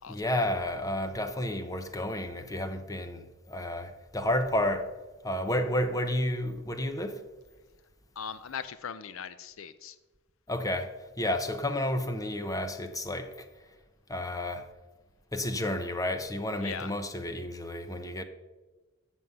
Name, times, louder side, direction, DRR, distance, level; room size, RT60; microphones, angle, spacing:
voice 1, 0.1-4.9 5.2-7.2 10.5-13.5 14.1-14.7 15.3-18.2, left 1 dB, 15° left, 0.8 m, -31 dB
voice 2, 8.2-10.0 16.6-16.9, left 7 dB, 90° left, 0.5 m, -39 dB
13.5 x 6.3 x 5.5 m
head